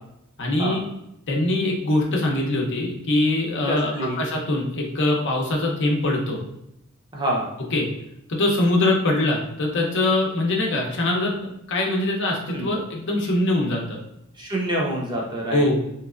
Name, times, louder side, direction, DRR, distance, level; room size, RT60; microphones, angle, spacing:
voice 1, 0.4-0.8 1.3-6.4 7.7-7.9 8.3-14.0 15.5-15.8, left 2 dB, 55° left, 0 dB, 0.7 m, -23 dB
voice 2, 3.7-4.2 7.1-7.5 12.5-12.7 14.4-15.6, right 1 dB, 20° right, -3 dB, 0.6 m, -26 dB
3.3 x 2.9 x 2.4 m, 0.81 s
head